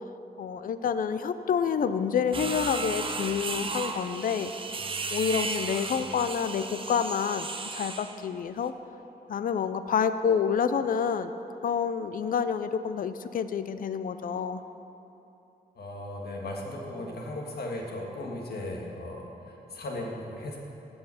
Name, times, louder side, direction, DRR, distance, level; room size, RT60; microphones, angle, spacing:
voice 1, 0.4-4.5 5.1-8.7 9.3-11.3 11.6-14.6, left 7 dB, 55° left, 11 dB, 0.4 m, -28 dB
sound 1, 2.3-8.2, right 4 dB, 30° right, 0.6 m, -34 dB
voice 2, 15.7-20.6, left 1 dB, 75° left, 0 dB, 1.6 m, -37 dB
15.5 x 5.5 x 5.7 m, 3.0 s
wide cardioid pair, 125°, 17 cm